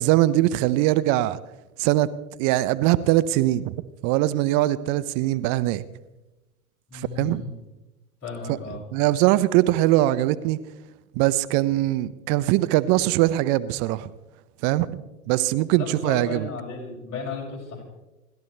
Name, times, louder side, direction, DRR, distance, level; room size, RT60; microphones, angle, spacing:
voice 1, 0.0-1.4 1.8-2.1 2.4-3.7 4.0-5.8 6.9-7.4 8.5-8.6 8.9-10.6 11.2-14.1 14.6-15.0 15.3-16.5, right 16 dB, 40° right, 0.7 m, -21 dB
voice 2, 6.9-7.6 8.2-8.8 15.8-17.8, left 4 dB, 35° left, 6.3 m, -34 dB
28.0 x 12.5 x 3.3 m
hypercardioid pair, 100°, 44 cm